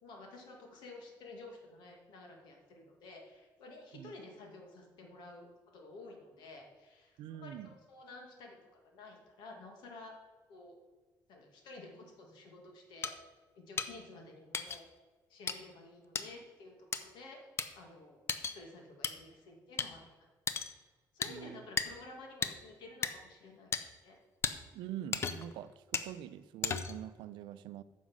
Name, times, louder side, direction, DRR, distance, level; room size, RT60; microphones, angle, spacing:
voice 1, 0.0-8.6 8.8-10.1 10.5-10.8 11.3-13.1 13.5-14.9 15.3-17.4 17.7-20.3 21.1-23.7 24.0-24.2, left 2 dB, 75° left, 1 dB, 2.3 m, -52 dB
voice 2, 7.2-7.7 21.3-21.6 24.7-27.8, right 11 dB, 90° right, 14 dB, 0.5 m, -45 dB
sound 1, 13.0-13.1 13.8-13.9 14.5-14.8 15.5-15.6 16.1-16.3 16.9-17.0 17.6-17.7 18.3-18.6 19.0-19.1 19.8-19.9 20.5-20.7 21.2-21.3 21.8-21.9 22.4-22.5 23.0-23.1 23.7-23.8 24.4-24.5 25.1-25.5 25.9-26.1 26.6-27.0, left 6 dB, 35° left, 0.6 m, -34 dB
9.4 x 6.2 x 6.3 m, 1.3 s
cardioid pair, 155°, 8 cm